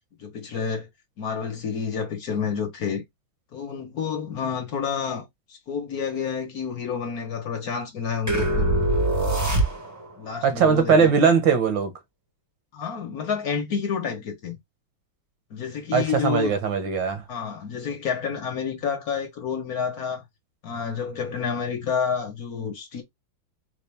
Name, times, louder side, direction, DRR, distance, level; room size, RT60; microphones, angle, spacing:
voice 1, 0.2-0.9 1.2-3.0 3.5-8.7 10.2-11.1 12.7-14.6 15.5-16.5 17.3-20.2 20.6-23.0, left 6 dB, 55° left, 1.3 m, -29 dB
sound 1, 8.3-10.2, right 1 dB, 15° right, 0.5 m, -23 dB
voice 2, 10.4-11.9 15.9-17.2, right 6 dB, 75° right, 1.7 m, -20 dB
4.3 x 2.4 x 3.2 m
omnidirectional pair, 2.1 m